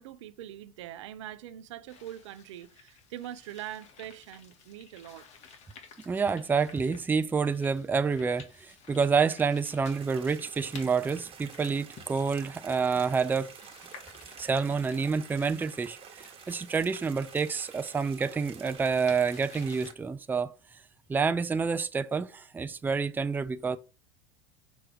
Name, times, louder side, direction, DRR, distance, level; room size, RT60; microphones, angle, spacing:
voice 1, 0.0-5.3, right 12 dB, 75° right, 0.6 m, -43 dB
sound 1, 1.9-19.9, left 6 dB, 45° left, 1.6 m, -54 dB
voice 2, 6.1-13.5 14.4-16.0 16.5-20.5 21.1-23.8, right 5 dB, 10° right, 0.4 m, -28 dB
sound 2, 9.9-19.9, right 7 dB, 35° right, 1.4 m, -49 dB
6.1 x 3.1 x 4.9 m
hypercardioid pair, 90°, 15 cm